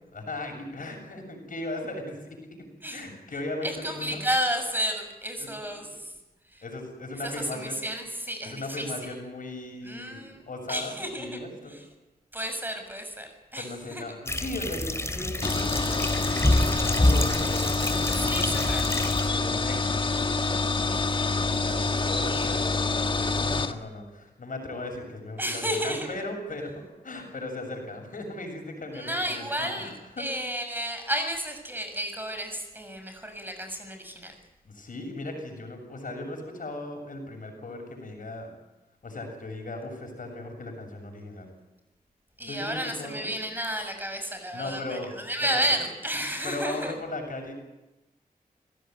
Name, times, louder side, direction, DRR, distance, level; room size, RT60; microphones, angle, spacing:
voice 1, 0.1-4.2 5.4-5.5 5.8-5.9 6.6-7.8 8.4-11.7 13.6-18.7 19.3-20.1 21.4-30.2 34.6-38.5 39.0-41.5 42.5-43.3 44.5-45.7 46.2-47.5, left 2 dB, 60° left, 3 dB, 7.2 m, -37 dB
voice 2, 3.6-6.1 6.5-6.6 7.1-8.9 9.8-11.4 11.7-11.8 12.3-14.0 18.1-18.9 25.4-26.1 28.9-34.4 42.4-46.9, equal, 10° right, 6 dB, 6.8 m, -32 dB
sound 1, 14.3-19.3, left 1 dB, 15° left, 3.1 m, -27 dB
sound 2, 15.4-23.7, left 3 dB, 30° left, 1.8 m, -27 dB
24.0 x 17.5 x 9.5 m, 1.0 s
cardioid pair, 55°, 16 cm